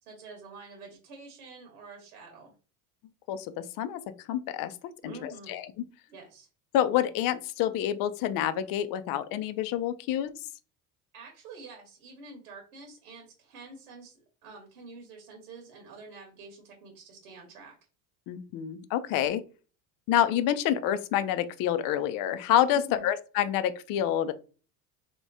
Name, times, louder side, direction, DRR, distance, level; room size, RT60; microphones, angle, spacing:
voice 1, 0.0-2.5 5.0-5.6 6.1-6.5 11.1-17.8 22.7-23.1, right 3 dB, 90° right, 1 dB, 1.4 m, -47 dB
voice 2, 3.3-4.0 4.3-4.7 5.0-5.6 6.7-10.3 18.3-19.4 20.1-24.3, left 11 dB, 50° left, 12 dB, 0.6 m, -27 dB
3.5 x 2.9 x 2.7 m, 0.37 s
supercardioid pair, 100°, 42 cm